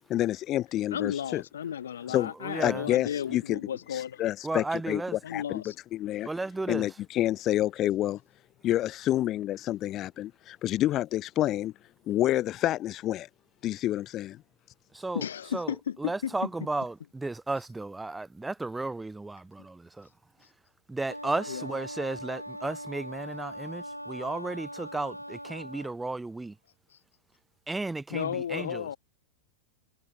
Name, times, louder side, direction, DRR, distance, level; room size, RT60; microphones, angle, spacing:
voice 1, 0.1-1.4 2.1-2.3 2.6-3.6 3.9-5.6 5.9-6.3 6.7-8.2 8.6-11.7 12.1-13.3 13.6-14.4, left 14 dB, 35° left, 0.4 m, -28 dB
voice 2, 0.9-4.2 5.2-5.7 15.1-16.3 21.5-21.7 28.1-29.0, left 9 dB, 65° left, 1.0 m, -34 dB
voice 3, 2.4-2.9 4.4-5.2 6.3-6.9 14.9-15.2 15.5-20.1 20.9-26.5 27.7-28.9, right 2 dB, 10° right, 0.8 m, -34 dB
Wind instrument woodwind instrument, 21.1-26.0, equal, 90° right, 0.9 m, -41 dB
figure-of-eight pair, 90°, 0 cm